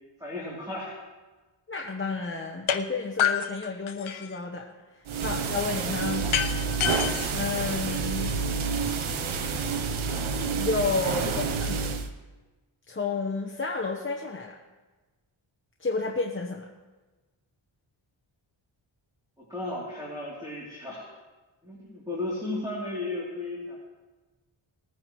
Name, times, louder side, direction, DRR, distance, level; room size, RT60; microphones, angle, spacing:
voice 1, 0.2-1.0 19.4-21.1 21.6-23.8, left 2 dB, 10° right, -6 dB, 3.1 m, -34 dB
voice 2, 1.7-4.7 4.9-6.3 7.3-8.4 10.5-11.9 12.9-14.5 15.8-16.7, left 4 dB, 25° left, -1 dB, 1.0 m, -31 dB
sound 1, 2.7-2.8 3.2-4.4 6.3-8.3, left 9 dB, 80° left, 0.8 m, -28 dB
sound 2, 5.1-12.1, right 5 dB, 85° right, 1.0 m, -29 dB
20.0 x 9.7 x 3.1 m, 1.2 s
wide cardioid pair, 95°, 47 cm